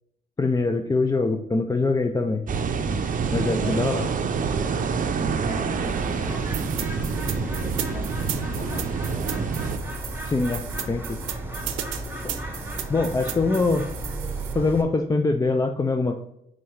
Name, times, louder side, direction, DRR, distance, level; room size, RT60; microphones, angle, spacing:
voice 1, 0.4-2.4 3.3-4.1 10.2-11.2 12.2-12.3 12.9-13.9 14.5-16.2, left 3 dB, 20° left, 6 dB, 0.4 m, -23 dB
sound 1, 2.5-9.8, right 5 dB, 40° right, 0.6 m, -27 dB
voice 2, 3.6-4.3 5.4-6.7 7.3-9.5, left 3 dB, 45° left, -1 dB, 2.1 m, -40 dB
Bird, 5.8-14.8, right 1 dB, 10° right, 1.0 m, -34 dB
sound 2, 6.5-14.5, right 11 dB, 85° right, 0.6 m, -35 dB
4.4 x 3.8 x 5.5 m, 0.80 s
cardioid pair, 90°, 20 cm